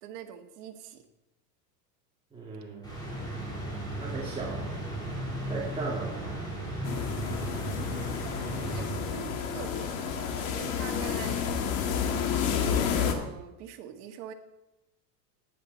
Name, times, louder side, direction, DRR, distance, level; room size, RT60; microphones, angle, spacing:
voice 1, 0.0-1.0 8.0-8.1 8.5-11.6 12.9-14.3, right 9 dB, 65° right, 5 dB, 1.8 m, -44 dB
voice 2, 2.3-2.9 4.0-4.8 5.5-6.4, right 3 dB, 10° right, -5 dB, 2.4 m, -37 dB
sound 1, 2.8-9.5, right 1 dB, 10° left, 3.2 m, -35 dB
sound 2, 6.8-13.1, left 7 dB, 55° left, 2.1 m, -30 dB
14.5 x 10.0 x 4.1 m, 0.95 s
supercardioid pair, 140°, 50 cm